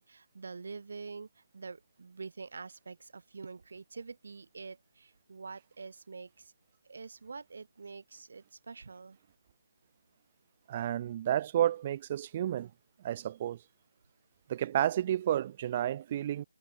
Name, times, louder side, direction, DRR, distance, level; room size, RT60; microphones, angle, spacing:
voice 1, 0.0-6.5 6.8-9.2, right 4 dB, 50° right, 1.0 m, -46 dB
voice 2, 10.7-12.7 13.0-13.6 14.5-16.4, right 11 dB, 25° right, 0.4 m, -31 dB
figure-of-eight pair, 155°, 0 cm